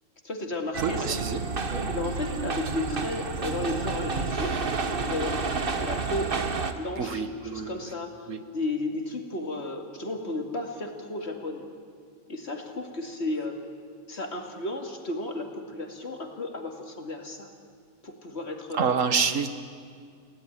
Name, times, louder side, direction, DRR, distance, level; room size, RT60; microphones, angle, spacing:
voice 1, 0.2-1.2 1.5-8.1 8.5-11.7 12.3-13.6 14.1-17.5 18.0-19.0, left 2 dB, 55° left, 3 dB, 2.7 m, -34 dB
sound 1, 0.7-6.7, right 4 dB, 45° right, 1.5 m, -30 dB
voice 2, 0.8-1.4 1.7-1.9 7.0-7.8 8.3-8.4 18.7-19.5, right 5 dB, 80° right, 10 dB, 1.7 m, -27 dB
30.0 x 17.5 x 10.0 m, 2.2 s
omnidirectional pair, 1.3 m